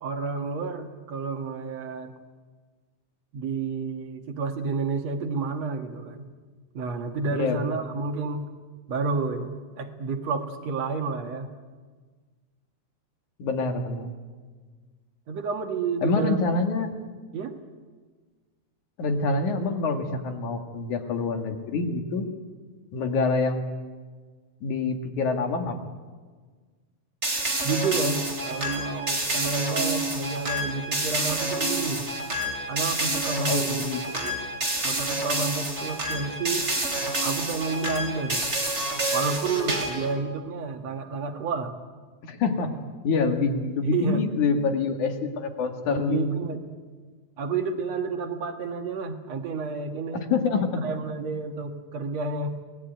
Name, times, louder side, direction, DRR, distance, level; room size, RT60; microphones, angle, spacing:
voice 1, 0.0-2.1 3.3-6.3 6.7-8.5 8.9-11.5 15.3-16.4 17.3-17.6 27.6-32.1 32.7-33.8 34.1-34.3 34.8-36.7 37.2-38.5 39.1-41.8 43.8-44.2 45.9-46.6 47.4-50.3 50.6-52.5, right 4 dB, 60° right, 5 dB, 2.6 m, -30 dB
voice 2, 7.3-7.6 13.4-14.1 16.0-17.0 19.0-22.3 22.9-23.6 24.6-25.9 33.5-34.0 42.2-42.7 43.0-46.5 50.1-50.8, left 4 dB, 75° left, 5 dB, 3.4 m, -26 dB
sound 1, 27.2-40.1, right 2 dB, 20° right, 3.2 m, -28 dB
26.5 x 19.0 x 9.2 m, 1.5 s
omnidirectional pair, 3.5 m